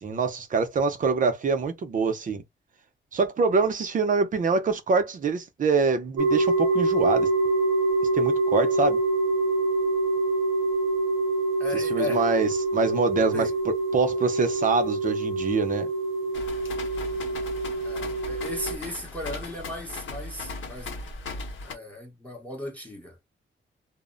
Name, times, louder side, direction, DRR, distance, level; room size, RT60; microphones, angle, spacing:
voice 1, 0.0-2.4 3.1-7.3 8.1-9.0 11.7-15.9, right 4 dB, 40° right, 0.5 m, -25 dB
sound 1, 6.2-18.8, right 2 dB, 90° right, 0.6 m, -25 dB
voice 2, 11.6-12.2 13.3-13.5 17.8-20.9 21.6-23.2, left 2 dB, 5° left, 0.7 m, -36 dB
sound 2, 16.3-21.7, left 3 dB, 75° left, 0.9 m, -38 dB
2.1 x 2.0 x 3.6 m
wide cardioid pair, 170°, 20 cm